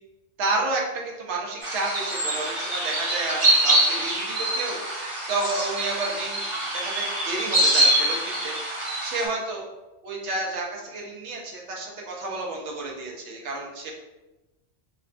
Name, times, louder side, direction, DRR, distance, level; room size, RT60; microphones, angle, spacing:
voice 1, 0.4-6.5 6.7-9.7 10.0-13.9, right 2 dB, 80° right, -1 dB, 1.0 m, -31 dB
sound 1, 1.6-9.3, right 1 dB, 30° right, 1.0 m, -24 dB
4.4 x 2.2 x 2.4 m, 1.0 s
omnidirectional pair, 1.2 m